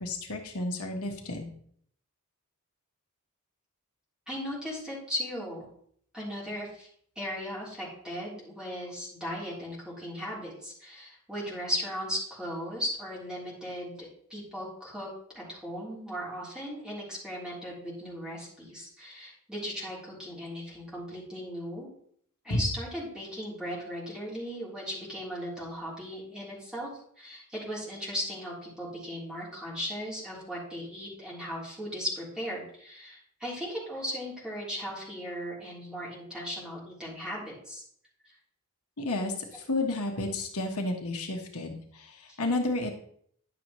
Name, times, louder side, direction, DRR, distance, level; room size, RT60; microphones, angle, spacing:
voice 1, 0.0-1.5 22.5-22.6 39.0-42.9, left 2 dB, 75° left, 3 dB, 1.2 m, -31 dB
voice 2, 4.3-5.7 6.1-6.9 7.1-15.1 15.3-21.9 22.4-26.9 27.2-37.8 38.2-38.3 42.3-42.4, equal, 5° right, -7 dB, 3.3 m, -37 dB
10.5 x 7.0 x 3.0 m, 0.62 s
head